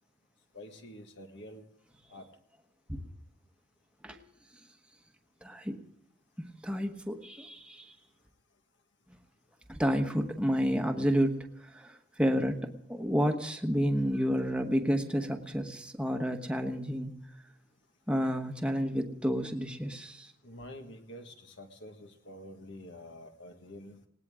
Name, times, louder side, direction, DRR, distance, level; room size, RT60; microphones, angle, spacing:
voice 1, 0.5-1.6 2.1-2.2 20.4-24.0, left 1 dB, 60° left, 5 dB, 1.7 m, -47 dB
voice 2, 5.4-5.8 6.4-7.9 9.7-17.2 18.1-20.3, equal, 5° right, 3 dB, 1.2 m, -30 dB
19.0 x 18.5 x 3.7 m, 0.65 s
head